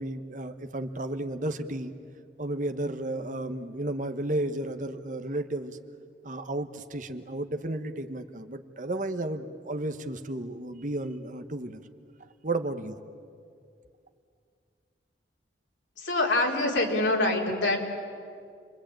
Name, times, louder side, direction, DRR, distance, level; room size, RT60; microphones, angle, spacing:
voice 1, 0.0-1.9 2.4-5.8 6.2-11.8 12.4-13.0, right 1 dB, 45° right, 9 dB, 1.2 m, -33 dB
voice 2, 16.0-17.8, left 2 dB, 85° left, 0 dB, 4.2 m, -25 dB
28.5 x 22.5 x 9.1 m, 2.3 s
head